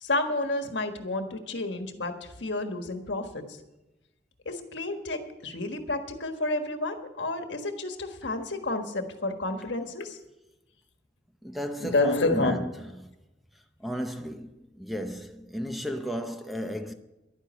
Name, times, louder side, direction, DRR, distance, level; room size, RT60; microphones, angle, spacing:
voice 1, 0.0-3.6 4.4-10.2 11.8-12.5, left 2 dB, 75° left, 1.5 m, -30 dB
voice 2, 11.4-12.6 13.0-13.1 13.8-16.9, equal, ahead, 0.7 m, -34 dB
11.5 x 9.5 x 8.1 m
head